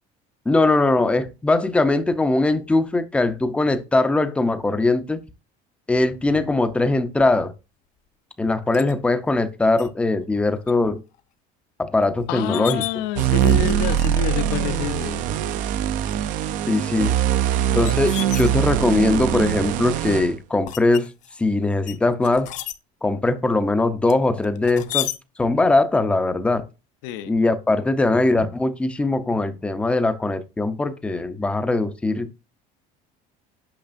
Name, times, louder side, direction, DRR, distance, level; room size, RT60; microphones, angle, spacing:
voice 1, 0.5-5.2 5.9-7.5 8.4-11.0 11.8-12.9 16.7-17.2 17.7-21.1 21.4-22.5 23.0-25.1 25.4-26.6 27.3-32.3, left 2 dB, 5° left, 0.5 m, -21 dB
sound 1, 8.7-8.9 9.8-9.9 10.3-10.7 11.1-11.2 12.0-12.1 12.4-13.7 14.0-14.3 15.0-15.1 15.9-16.3 17.0-19.0 19.6-20.0 20.7-21.4 21.9-22.7 24.1-25.2, left 14 dB, 45° left, 0.7 m, -33 dB
voice 2, 12.3-15.3 17.4-17.9 27.0-27.3, left 13 dB, 85° left, 0.9 m, -28 dB
sound 2, 13.2-20.3, right 11 dB, 45° right, 0.5 m, -22 dB
8.7 x 6.3 x 2.5 m
cardioid pair, 180°, 18 cm